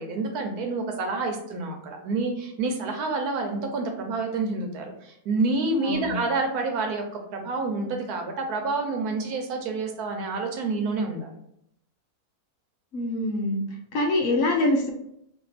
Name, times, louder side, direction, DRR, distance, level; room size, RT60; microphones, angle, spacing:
voice 1, 0.0-11.3, right 3 dB, 75° right, 3 dB, 1.3 m, -28 dB
voice 2, 5.8-6.2 12.9-14.9, left 1 dB, 65° left, 1 dB, 1.0 m, -25 dB
3.6 x 2.7 x 4.0 m, 0.76 s
omnidirectional pair, 1.6 m